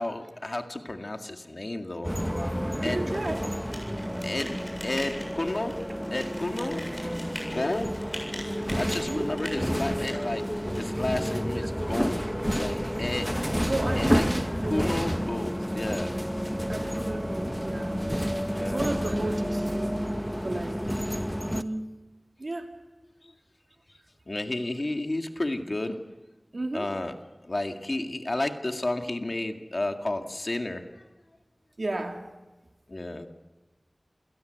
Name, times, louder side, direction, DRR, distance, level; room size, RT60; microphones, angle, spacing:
voice 1, 0.0-2.1 2.8-3.0 4.2-5.7 6.1-6.8 7.5-7.9 8.2-8.3 8.7-12.2 12.6-13.3 14.0-14.2 14.7-16.1 18.5-18.9 20.5-20.6 23.2-23.3 24.3-26.0 26.7-27.1 27.4-30.9 32.9-33.3, left 2 dB, 55° left, 5 dB, 2.0 m, -32 dB
sound 1, 2.0-21.6, equal, ahead, 1.1 m, -30 dB
voice 2, 2.8-3.4 9.1-9.3 13.7-15.0 16.7-18.0 18.6-20.0 20.4-21.0 21.4-21.8 22.4-22.7 26.5-26.9 31.8-32.2, right 2 dB, 70° right, 4 dB, 2.6 m, -33 dB
sound 2, 3.1-10.8, equal, 15° left, 7.7 m, -42 dB
28.5 x 17.0 x 8.1 m, 1.2 s
wide cardioid pair, 45°, 0 cm